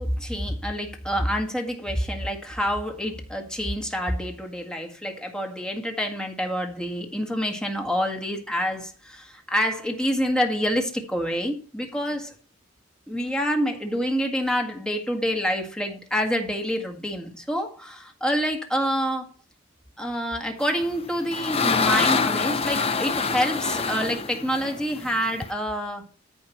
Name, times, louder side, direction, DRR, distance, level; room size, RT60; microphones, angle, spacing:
voice 1, 0.0-12.3 13.1-19.3 20.0-26.1, equal, 5° left, 3 dB, 1.8 m, -27 dB
sound 1, 20.8-25.5, left 4 dB, 30° left, 0.7 m, -25 dB
14.0 x 5.3 x 4.2 m, 0.38 s
head